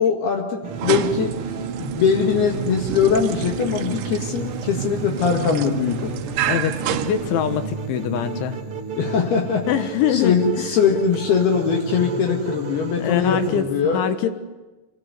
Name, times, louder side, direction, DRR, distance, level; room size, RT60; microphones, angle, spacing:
voice 1, 0.0-1.4 1.8-6.1 8.9-9.7 10.1-14.0, left 6 dB, 65° left, 1 dB, 3.4 m, -21 dB
sound 1, 0.6-13.6, right 5 dB, 50° right, 1.7 m, -32 dB
sound 2, 0.7-7.9, right 11 dB, 70° right, 2.7 m, -30 dB
voice 2, 6.5-8.6 9.7-10.7 13.0-14.3, left 9 dB, 80° left, 9 dB, 3.7 m, -23 dB
26.0 x 20.5 x 8.1 m, 1.1 s
omnidirectional pair, 5.5 m